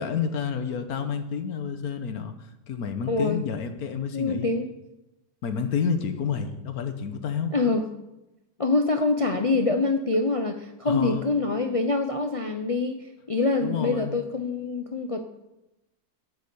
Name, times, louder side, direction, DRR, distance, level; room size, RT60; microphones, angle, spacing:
voice 1, 0.0-4.5 5.4-7.5 10.8-11.3 13.6-14.1, left 6 dB, 70° left, 8 dB, 1.5 m, -29 dB
voice 2, 3.1-3.4 4.1-4.7 7.5-7.9 8.6-15.3, left 3 dB, 50° left, 6 dB, 0.4 m, -25 dB
8.8 x 8.1 x 6.9 m, 0.96 s
omnidirectional pair, 1.7 m